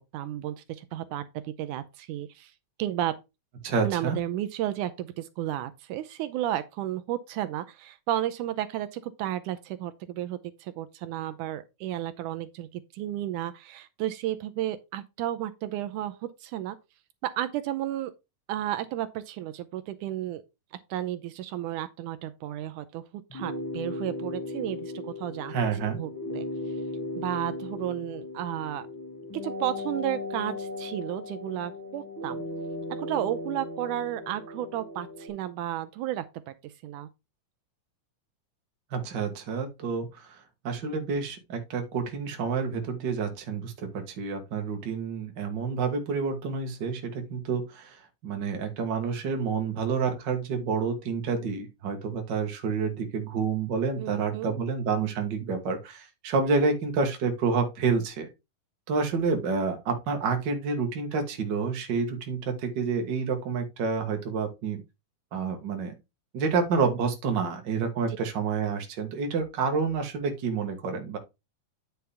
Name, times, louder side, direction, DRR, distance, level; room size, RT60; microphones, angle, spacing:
voice 1, 0.1-2.5 2.8-3.2 3.8-16.8 17.2-18.1 18.5-20.4 20.9-23.0 23.3-25.5 26.0-26.5 27.2-28.9 29.3-32.4 33.0-37.1 54.0-54.5 68.1-68.2, right 13 dB, 80° right, 2.1 m, -33 dB
voice 2, 3.6-4.2 25.5-26.0 38.9-40.4 40.6-48.0 48.2-58.3 58.9-64.8 65.3-65.9 66.3-71.2, right 5 dB, 45° right, 1.8 m, -29 dB
sound 1, 23.3-35.3, left 2 dB, 10° left, 1.2 m, -37 dB
9.4 x 5.7 x 3.5 m
omnidirectional pair, 3.6 m